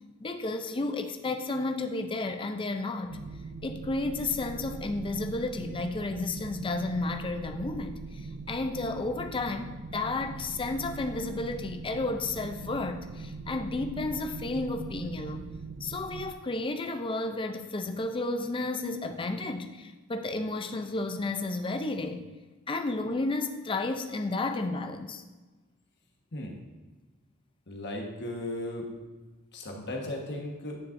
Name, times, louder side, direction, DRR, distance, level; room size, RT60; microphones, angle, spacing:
voice 1, 0.2-3.2 3.6-15.4 15.8-22.2 22.7-25.2, left 2 dB, 25° left, 6 dB, 0.5 m, -32 dB
sound 1, 3.1-16.3, right 4 dB, 50° right, 0.4 m, -41 dB
voice 2, 27.7-28.9 29.5-30.8, left 1 dB, 55° left, 0 dB, 1.4 m, -36 dB
10.0 x 6.6 x 2.6 m, 1.2 s
head